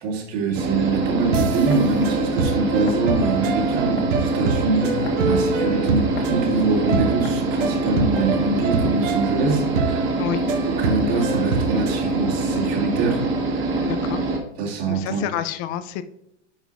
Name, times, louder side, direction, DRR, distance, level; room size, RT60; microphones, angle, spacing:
voice 1, 0.0-10.1 10.7-13.2 13.5-13.9 14.6-15.3, right 3 dB, 55° right, -2 dB, 2.6 m, -24 dB
sound 1, 0.5-14.4, right 2 dB, 30° right, 1.7 m, -24 dB
sound 2, 1.3-12.0, right 4 dB, 80° right, 1.3 m, -27 dB
sound 3, 1.7-2.0 2.9-3.1 4.0-4.2 5.1-5.4 6.2-6.4 7.2-7.5 8.2-8.4 8.8-10.1 10.4-10.6 11.1-11.3, left 5 dB, 55° left, 1.4 m, -35 dB
voice 2, 13.8-14.2 14.9-16.0, left 11 dB, 25° left, 12 dB, 0.3 m, -29 dB
9.8 x 4.9 x 2.5 m, 0.81 s
hypercardioid pair, 120°, 37 cm